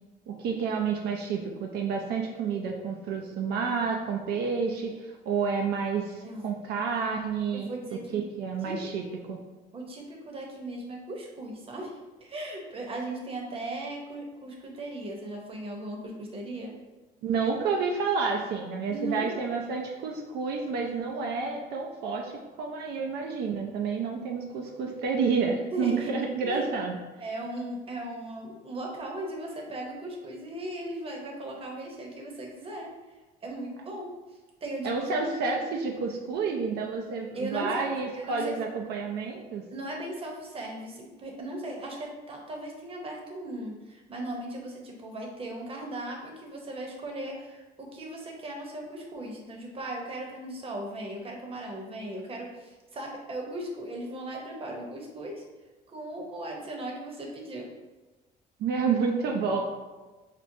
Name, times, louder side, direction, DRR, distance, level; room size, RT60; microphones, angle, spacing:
voice 1, 0.3-7.7 8.1-9.0 9.3-9.4 17.2-22.3 22.6-27.0 34.8-39.7 58.6-59.8, right 5 dB, 75° right, 1 dB, 0.5 m, -29 dB
voice 2, 7.5-8.2 8.6-8.7 9.7-11.9 12.2-16.8 18.9-19.4 25.7-26.1 26.4-26.7 27.2-32.9 33.4-34.1 34.6-35.4 37.3-38.6 39.7-55.4 55.9-57.7, right 1 dB, 35° right, 0 dB, 0.9 m, -37 dB
5.9 x 2.1 x 2.7 m, 1.2 s
cardioid pair, 110°, 17 cm